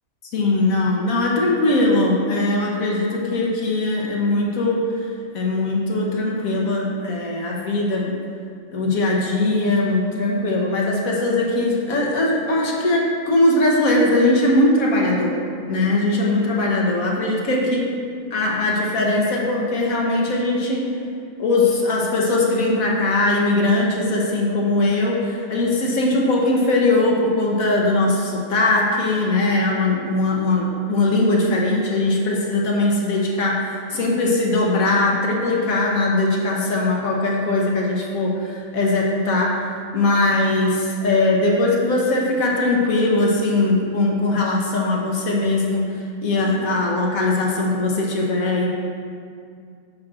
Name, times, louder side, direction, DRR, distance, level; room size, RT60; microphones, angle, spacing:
voice 1, 0.3-4.8 5.3-8.2 8.7-15.4 15.7-17.8 18.3-20.8 21.4-39.7 39.9-45.9 46.2-48.7, left 2 dB, 85° left, -2 dB, 1.5 m, -20 dB
14.0 x 6.1 x 2.5 m, 2.3 s
omnidirectional pair, 1.4 m